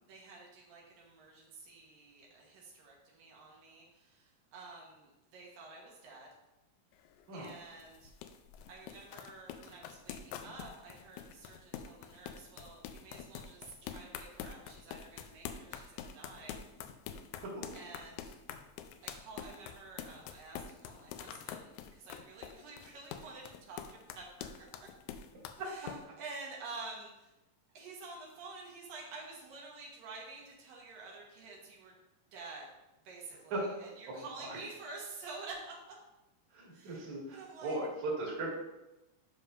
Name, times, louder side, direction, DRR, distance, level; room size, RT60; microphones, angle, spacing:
voice 1, 0.1-6.3 7.3-8.1 8.7-16.6 17.7-18.3 19.0-24.5 25.7-27.3 27.7-31.9 32.3-32.7 33.0-35.7 36.7-37.8, right 3 dB, 80° right, -3 dB, 2.9 m, -49 dB
sound 1, 6.9-26.0, left 9 dB, 85° left, 1.7 m, -46 dB
voice 2, 17.4-17.7 25.6-25.7 26.0-26.1 33.5-33.7 34.4-34.6 36.5-38.6, right 2 dB, 60° right, -5 dB, 3.2 m, -38 dB
12.0 x 5.4 x 2.6 m, 0.96 s
omnidirectional pair, 3.9 m